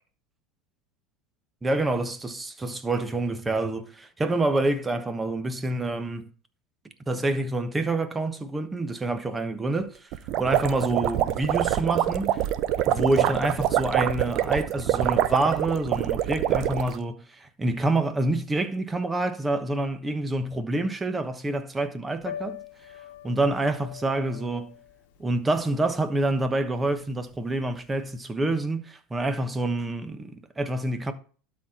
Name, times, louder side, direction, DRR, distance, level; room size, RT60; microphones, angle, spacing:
voice 1, 1.6-6.3 7.1-10.1 10.4-12.4 12.8-22.6 23.2-24.7 25.2-31.1, right 2 dB, 15° right, 1.2 m, -27 dB
sound 1, 10.1-17.0, right 12 dB, 55° right, 0.7 m, -25 dB
Piano, 22.2-28.1, left 11 dB, 70° left, 1.1 m, -43 dB
12.0 x 4.3 x 4.3 m
supercardioid pair, 105°, 0 cm